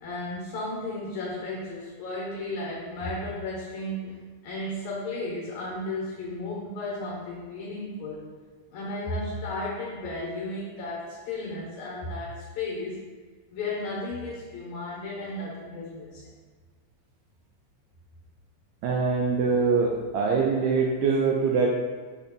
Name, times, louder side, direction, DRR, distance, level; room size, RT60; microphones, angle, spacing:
voice 1, 0.0-4.2 4.4-8.2 8.7-13.0 13.5-16.3, left 2 dB, 75° left, -5 dB, 2.2 m, -34 dB
voice 2, 18.8-21.7, right 4 dB, 80° right, -1 dB, 1.9 m, -23 dB
6.5 x 2.9 x 5.2 m, 1.4 s
omnidirectional pair, 3.4 m